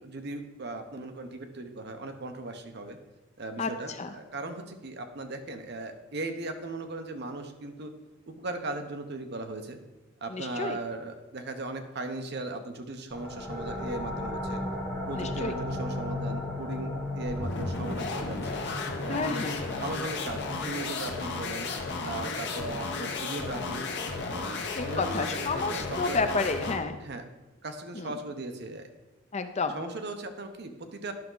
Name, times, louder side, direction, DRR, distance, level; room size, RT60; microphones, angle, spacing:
voice 1, 0.0-3.0 3.4-7.9 8.3-9.8 10.2-14.6 15.1-18.6 19.1-21.7 22.0-23.9 24.3-26.2 27.0-27.3 27.6-28.9 29.7-31.1, right 2 dB, 55° right, 6 dB, 0.8 m, -38 dB
voice 2, 10.3-10.8 15.2-15.5 19.1-19.6 24.8-27.0 28.0-28.1 29.3-29.7, left 4 dB, 35° left, 8 dB, 0.5 m, -30 dB
sound 1, 13.1-24.5, left 1 dB, 5° left, 2.8 m, -37 dB
sound 2, 17.2-26.9, left 3 dB, 60° left, 0.9 m, -34 dB
10.5 x 5.9 x 3.8 m, 1.1 s
head